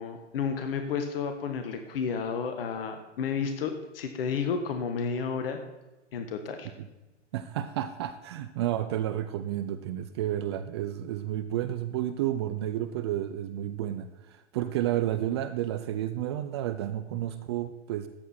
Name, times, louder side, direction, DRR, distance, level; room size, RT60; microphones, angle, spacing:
voice 1, 0.0-5.6 6.1-6.7, left 6 dB, 50° left, 7 dB, 1.4 m, -31 dB
voice 2, 7.3-18.1, right 12 dB, 25° right, 11 dB, 0.4 m, -31 dB
13.5 x 9.3 x 4.3 m, 1.1 s
hypercardioid pair, 120°, 37 cm